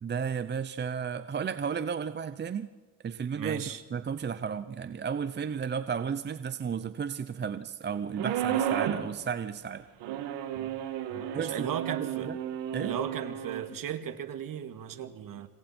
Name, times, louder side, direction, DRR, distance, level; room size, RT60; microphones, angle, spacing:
voice 1, 0.0-2.7 3.0-9.8 11.3-12.4 12.7-13.0, right 7 dB, 25° right, 12 dB, 0.8 m, -33 dB
voice 2, 3.4-3.8 10.6-10.7 11.1-12.3 12.8-15.5, right 9 dB, 50° right, 9 dB, 2.1 m, -36 dB
sound 1, 8.2-9.1 10.0-13.7, right 10 dB, 70° right, 2.5 m, -32 dB
26.5 x 26.0 x 4.5 m, 1.2 s
supercardioid pair, 100°, 43 cm